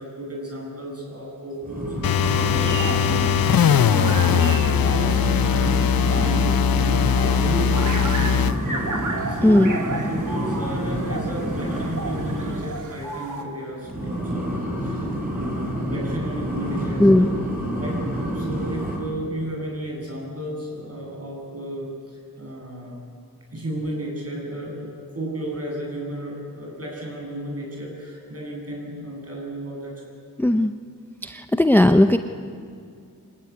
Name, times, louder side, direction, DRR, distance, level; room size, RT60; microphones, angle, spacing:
voice 1, 0.0-4.5 4.8-8.4 8.6-8.9 9.3-17.4 17.8-18.1 18.3-23.0 23.5-29.9, right 1 dB, 45° right, -1 dB, 7.9 m, -33 dB
sound 1, 1.6-12.8 13.8-19.0, equal, 25° right, 6.8 m, -28 dB
sound 2, 2.0-8.6, left 8 dB, 90° left, 0.7 m, -20 dB
sound 3, 2.2-13.4, right 3 dB, 60° right, 2.4 m, -34 dB
voice 2, 9.4-9.8 17.0-17.3 30.4-30.7 31.2-32.2, left 1 dB, 5° left, 8 dB, 0.6 m, -16 dB
25.0 x 19.5 x 9.8 m, 2.3 s
wide cardioid pair, 115°, 34 cm